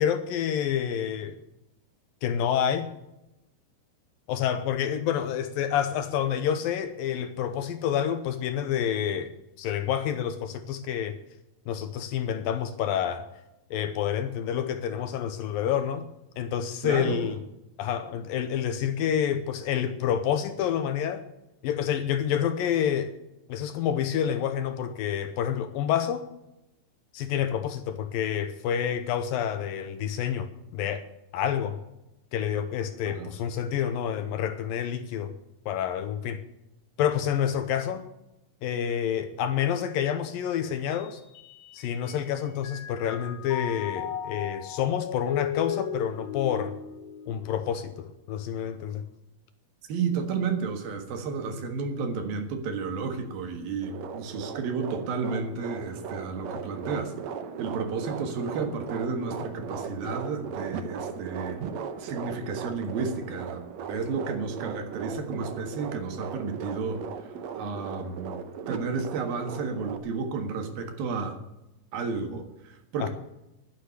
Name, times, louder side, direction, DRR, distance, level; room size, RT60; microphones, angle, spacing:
voice 1, 0.0-1.4 2.2-2.9 4.3-9.3 9.6-11.2 11.7-13.2 13.7-16.1 16.4-17.4 17.8-21.2 21.6-23.1 23.5-26.3 27.1-31.0 31.3-31.8 32.3-35.3 35.7-36.4 37.0-38.0 38.6-41.2 41.7-46.7 47.3-49.0 73.0-73.1, left 9 dB, 75° left, 10 dB, 2.3 m, -28 dB
voice 2, 16.8-17.3 33.1-33.3 49.9-57.1 57.6-61.6 62.0-68.4 68.7-71.4 71.9-73.1, right 4 dB, 70° right, 6 dB, 3.3 m, -32 dB
Mallet percussion, 40.9-42.3 42.6-48.1, left 8 dB, 55° left, 2.4 m, -36 dB
sound 1, 53.8-70.0, right 6 dB, 90° right, 1.5 m, -37 dB
11.5 x 10.0 x 8.2 m, 0.91 s
omnidirectional pair, 4.6 m